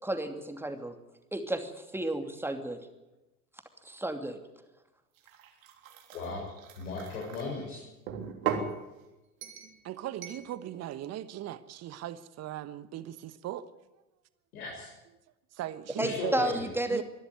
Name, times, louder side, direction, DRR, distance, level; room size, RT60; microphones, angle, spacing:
voice 1, 0.0-0.9 1.3-2.8 3.8-4.4 16.0-17.0, right 1 dB, 5° right, 6 dB, 2.8 m, -32 dB
sound 1, 5.2-7.5 8.1-8.7 9.4-9.8 10.2-10.5, right 7 dB, 65° right, 3.4 m, -37 dB
voice 2, 6.1-6.4 6.8-7.8 14.5-14.9 15.9-16.7, left 3 dB, 70° left, -3 dB, 7.1 m, -36 dB
voice 3, 9.8-13.7 15.5-16.3 16.9-17.0, right 12 dB, 35° right, 14 dB, 1.3 m, -38 dB
23.5 x 13.0 x 9.5 m, 1.0 s
figure-of-eight pair, 80°, 45 cm